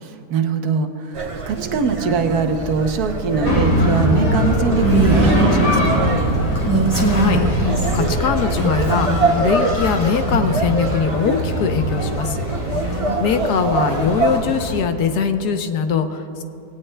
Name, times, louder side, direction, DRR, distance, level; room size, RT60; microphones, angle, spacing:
voice 1, 0.0-6.1 12.7-13.2, right 5 dB, 70° right, 6 dB, 1.3 m, -22 dB
sound 1, 1.1-14.4, right 2 dB, 50° right, 0.3 m, -25 dB
sound 2, 3.4-14.8, left 1 dB, 55° left, 2.6 m, -22 dB
Female speech woman speaking, 4.8-5.5 6.6-8.0 8.6-9.5, right 3 dB, 15° left, 1.2 m, -21 dB
voice 2, 7.0-9.1 9.4-12.4 12.9-16.4, left 6 dB, 80° left, 7 dB, 1.3 m, -22 dB
19.0 x 17.0 x 2.2 m, 2.8 s
omnidirectional pair, 1.7 m